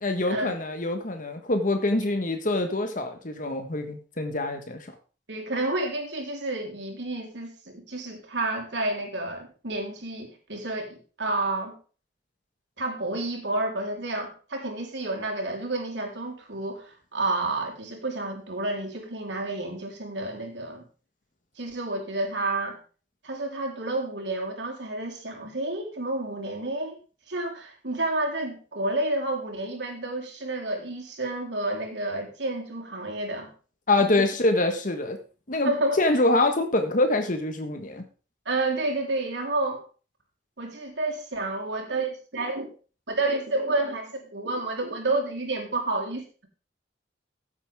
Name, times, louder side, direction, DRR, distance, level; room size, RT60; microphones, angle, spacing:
voice 1, 0.0-4.9 33.9-35.2 35.5-35.7 36.0-38.0, left 2 dB, 50° left, 6 dB, 1.4 m, -25 dB
voice 2, 5.3-11.8 12.8-20.9 21.6-22.8 23.2-27.0 27.3-33.5 34.0-34.3 35.6-36.0 38.5-39.8 40.6-42.7 43.1-46.5, right 2 dB, 80° right, 1 dB, 3.8 m, -30 dB
15.5 x 8.2 x 3.6 m, 0.36 s
head